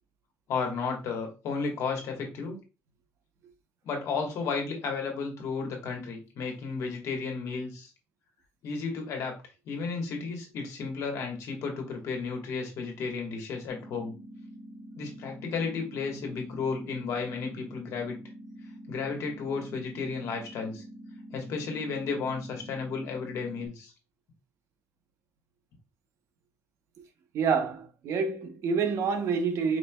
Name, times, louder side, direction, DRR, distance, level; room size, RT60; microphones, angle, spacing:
voice 1, 0.5-2.6 3.8-7.9 8.6-9.3 9.6-14.1 15.0-18.2 18.9-20.8 21.3-23.9, left 5 dB, 75° left, 1.4 m, -33 dB
sound 1, 13.7-23.7, equal, 50° left, 1.6 m, -46 dB
voice 2, 27.3-29.8, right 5 dB, 70° right, 0.8 m, -27 dB
4.8 x 3.1 x 2.3 m
cardioid pair, 130°, 5 cm